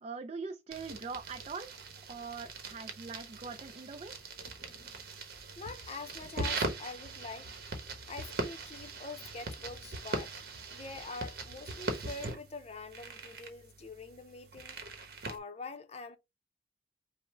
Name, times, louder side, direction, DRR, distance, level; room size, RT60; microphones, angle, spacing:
voice 1, 0.0-1.7 2.1-4.2, right 4 dB, 35° right, 0.4 m, -42 dB
sound 1, 0.7-15.4, right 2 dB, 55° right, 1.0 m, -41 dB
voice 2, 5.6-7.5 8.1-10.4 10.7-14.8 15.3-16.2, left 3 dB, 35° left, 0.6 m, -45 dB
5.5 x 2.1 x 4.3 m
head